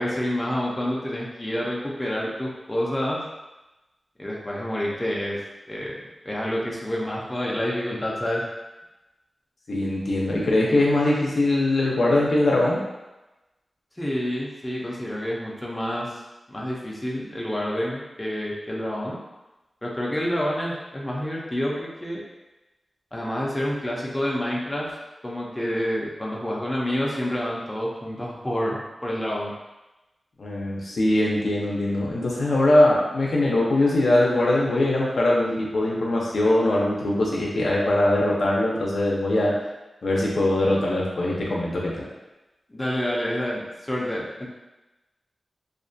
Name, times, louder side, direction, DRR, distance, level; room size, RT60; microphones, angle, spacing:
voice 1, 0.0-3.2 4.2-5.4 5.7-6.0 6.2-8.5 14.0-16.2 16.5-19.2 19.8-22.2 23.1-24.9 25.2-29.5 42.7-44.5, equal, 15° left, -4 dB, 0.5 m, -28 dB
voice 2, 9.7-12.8 30.4-39.5 40.0-42.0, left 1 dB, 70° left, -4 dB, 0.5 m, -21 dB
2.4 x 2.2 x 2.6 m, 1.0 s
wide cardioid pair, 95°, 0 cm